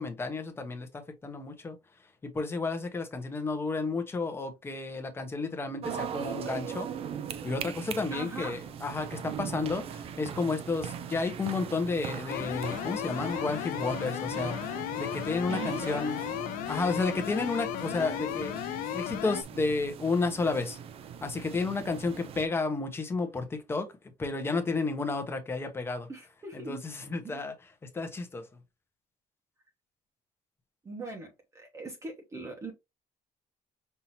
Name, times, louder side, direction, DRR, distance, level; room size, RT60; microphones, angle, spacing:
voice 1, 0.0-1.8 2.2-6.9 7.4-16.2 16.7-18.6 18.9-20.8 21.2-23.9 24.2-26.1 26.5-27.5 27.8-28.5, left 3 dB, 15° left, 0.9 m, -32 dB
sound 1, 5.8-22.5, right 8 dB, 45° right, 0.4 m, -40 dB
voice 2, 8.1-8.6 15.5-16.1 26.1-26.8 27.2-27.4 30.8-32.7, right 3 dB, 20° right, 1.0 m, -40 dB
sound 2, 12.3-19.4, left 13 dB, 80° left, 0.4 m, -35 dB
5.5 x 2.7 x 2.9 m
cardioid pair, 175°, 14 cm